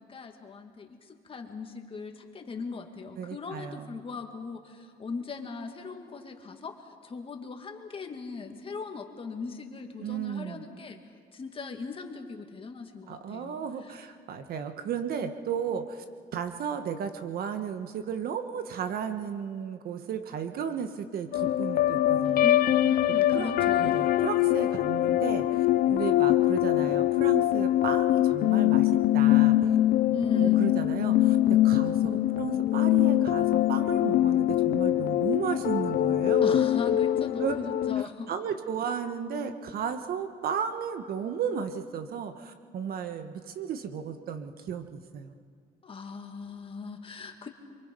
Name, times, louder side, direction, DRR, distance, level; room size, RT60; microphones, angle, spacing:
voice 1, 0.0-6.8 7.0-11.0 11.3-14.0 22.2-24.1 30.1-30.7 36.4-38.3 45.8-47.5, left 4 dB, 30° left, 4 dB, 2.3 m, -38 dB
voice 2, 3.2-4.0 10.0-10.6 13.1-16.0 16.3-22.5 23.3-29.8 30.3-36.6 37.4-37.5 38.0-45.3, right 7 dB, 65° right, 8 dB, 1.6 m, -34 dB
sound 1, 21.3-38.0, left 13 dB, 60° left, 0.5 m, -23 dB
27.0 x 24.0 x 5.5 m, 2.1 s
cardioid pair, 110°, 17 cm